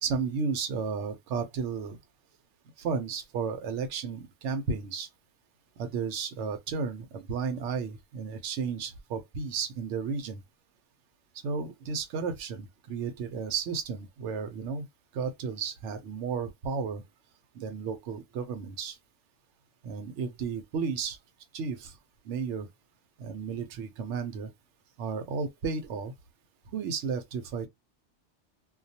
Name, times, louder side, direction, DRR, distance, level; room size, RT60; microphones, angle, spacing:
voice 1, 0.0-2.0 2.8-5.1 5.8-10.4 11.4-14.9 15.1-17.0 17.5-19.0 19.8-21.2 21.5-22.0 22.2-22.7 23.2-24.5 25.0-26.1 26.7-27.7, right 5 dB, 85° right, 0.9 m, -33 dB
2.3 x 2.2 x 2.6 m
omnidirectional pair, 1.2 m